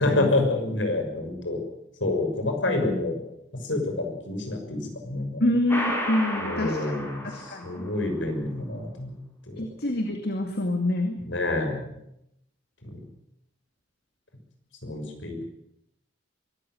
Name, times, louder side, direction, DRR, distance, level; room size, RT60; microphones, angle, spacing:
voice 1, 0.0-1.6 2.0-3.2 3.5-5.4 6.4-9.2 9.5-9.6 11.2-11.8 12.8-13.0 14.8-15.4, left 2 dB, 80° left, 4 dB, 6.3 m, -28 dB
voice 2, 5.4-6.8 7.3-7.9 9.6-11.2, left 1 dB, 55° left, 4 dB, 2.3 m, -26 dB
sound 1, 5.7-8.1, equal, 10° left, 5.5 m, -32 dB
23.5 x 14.5 x 9.3 m, 0.80 s
head